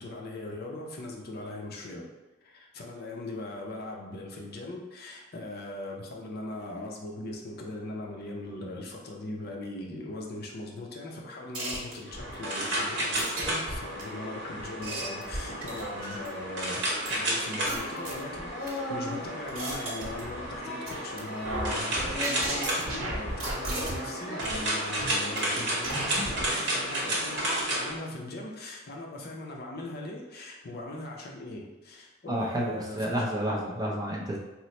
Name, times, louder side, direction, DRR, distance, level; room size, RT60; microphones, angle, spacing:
voice 1, 0.0-2.1 2.4-33.3, left 2 dB, 50° left, 0 dB, 0.5 m, -40 dB
sound 1, 11.5-12.3 13.2-14.0 14.6-16.4 17.1-17.2 17.7-18.7 19.2-20.6 20.9-21.2 21.4-24.1 24.4-24.6 25.0-25.4 25.8-26.5, right 1 dB, 90° right, 0.9 m, -35 dB
sound 2, 12.1-27.9, right 1 dB, 60° right, 0.9 m, -32 dB
Singing, 17.6-19.3 20.6-23.2 23.6-25.4 26.2-26.5 27.4-28.1, left 1 dB, 10° left, 1.5 m, -40 dB
voice 2, 32.3-34.4, equal, 20° right, -2 dB, 0.4 m, -30 dB
3.0 x 2.0 x 4.1 m, 1.1 s
head